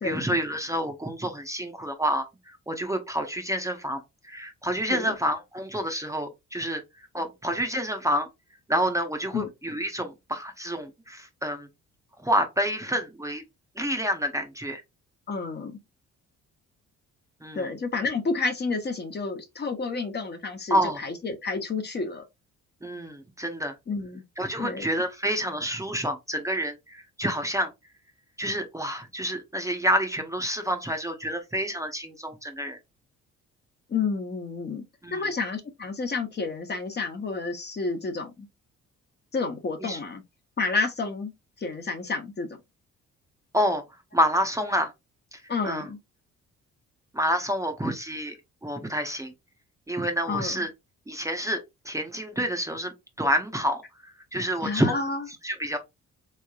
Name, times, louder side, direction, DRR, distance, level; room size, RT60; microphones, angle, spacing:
voice 1, 0.0-6.8 7.1-8.3 8.7-11.7 12.2-13.4 13.8-14.8 17.4-17.7 20.7-21.0 22.8-23.7 24.4-27.7 28.4-32.8 35.0-35.3 39.8-40.0 43.5-43.8 44.1-44.9 45.3-45.8 47.1-48.4 48.6-49.3 49.9-50.7 51.1-52.9 53.2-53.8 54.3-54.9 55.4-55.8, equal, 10° right, 0.7 m, -28 dB
voice 2, 15.3-15.8 17.5-22.2 23.9-24.2 24.6-24.9 33.9-34.8 35.1-38.5 39.3-40.2 40.6-41.3 41.6-42.5 45.5-46.0 50.3-50.6 54.6-55.2, left 4 dB, 35° left, 0.8 m, -30 dB
3.6 x 3.2 x 2.3 m
cardioid pair, 90°, 30 cm